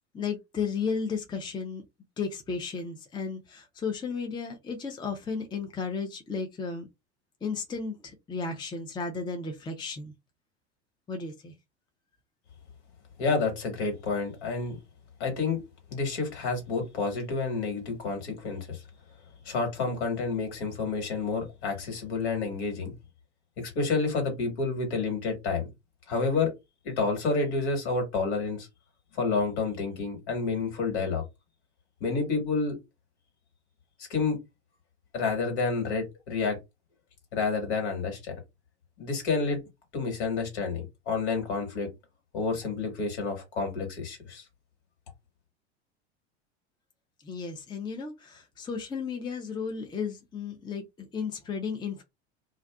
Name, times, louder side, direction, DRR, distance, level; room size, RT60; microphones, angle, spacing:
voice 1, 0.1-1.8 2.2-6.9 7.4-10.1 11.1-11.5 47.2-52.0, left 5 dB, 15° left, 0.5 m, -34 dB
voice 2, 13.2-14.8 15.2-15.6 15.9-18.8 19.5-22.9 23.6-25.6 26.1-26.5 26.8-28.7 29.1-31.2 32.0-32.8 34.1-34.4 35.1-36.6 37.3-38.4 39.0-39.6 39.9-41.9 42.3-44.4, left 4 dB, 65° left, 1.6 m, -29 dB
2.4 x 2.4 x 2.3 m
hypercardioid pair, 85°, 36 cm